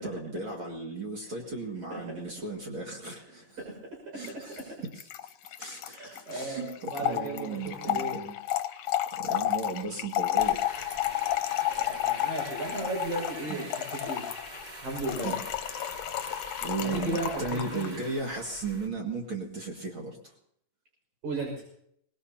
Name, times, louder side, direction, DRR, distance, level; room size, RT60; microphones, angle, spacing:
voice 1, 0.0-3.6 4.1-5.3 5.6-8.4 9.2-10.7 13.5-13.8 15.2-15.4 16.6-20.3, right 3 dB, 45° right, 0 dB, 2.7 m, -36 dB
voice 2, 3.6-4.7 5.9-8.2 11.1-14.2 14.8-15.3 16.8-18.0 21.2-21.6, right 2 dB, 75° right, -1 dB, 7.3 m, -36 dB
Trickle dribble / Fill (with liquid), 4.2-4.3 4.6-4.7 4.9-18.0, left 13 dB, 70° left, 1.9 m, -31 dB
sound 1, 10.4-18.9, right 1 dB, 20° right, 1.4 m, -44 dB
24.5 x 20.5 x 2.9 m, 0.69 s
omnidirectional pair, 3.4 m